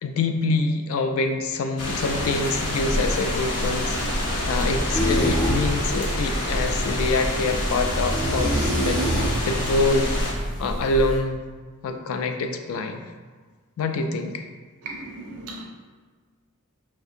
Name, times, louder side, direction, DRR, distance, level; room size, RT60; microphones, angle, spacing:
voice 1, 0.0-9.0 9.4-11.4 11.8-13.0 13.8-14.5, left 3 dB, 70° left, 5 dB, 0.3 m, -26 dB
sound 1, 1.8-10.3, left 1 dB, 85° left, 0.7 m, -27 dB
sound 2, 4.9-11.2, equal, 5° left, 0.6 m, -27 dB
voice 2, 14.8-15.6, right 2 dB, 85° right, 0 dB, 0.4 m, -36 dB
5.3 x 2.7 x 2.4 m, 1.5 s
head